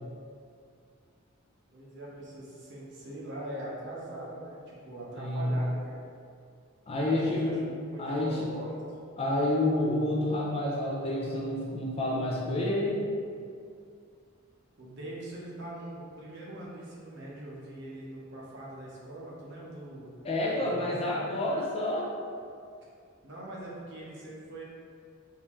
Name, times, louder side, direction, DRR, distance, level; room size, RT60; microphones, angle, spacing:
voice 1, 1.7-5.9 7.0-7.6 7.9-8.8 14.8-20.1 20.6-20.9 23.2-24.6, right 1 dB, 55° right, -5 dB, 0.7 m, -42 dB
voice 2, 5.2-5.5 6.9-7.6 8.0-8.5 9.2-13.0 20.2-22.1, left 1 dB, 25° left, -3 dB, 0.4 m, -29 dB
3.5 x 2.6 x 3.0 m, 2.3 s
head